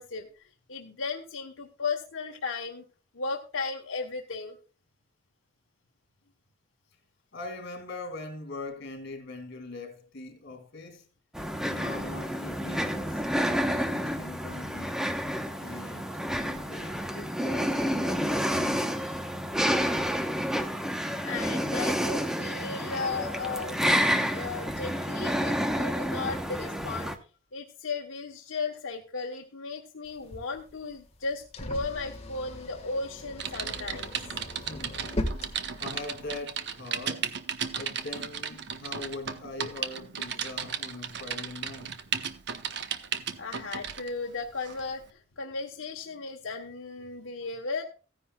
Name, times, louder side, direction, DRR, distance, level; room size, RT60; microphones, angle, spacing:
voice 1, 0.0-2.8 3.1-4.6 21.2-27.1 27.5-34.1 43.4-47.8, left 4 dB, 90° left, 1.0 m, -35 dB
voice 2, 7.3-11.1 11.7-14.9 15.6-19.2 34.3-35.0 35.5-37.4 37.8-41.9, left 2 dB, 60° left, 3.3 m, -42 dB
sound 1, 11.3-27.2, equal, 5° right, 0.9 m, -29 dB
sound 2, 30.1-36.3, left 1 dB, 35° left, 1.5 m, -39 dB
Typing, 33.4-44.1 44.6-44.8, right 7 dB, 60° right, 0.9 m, -35 dB
15.5 x 9.9 x 2.3 m
head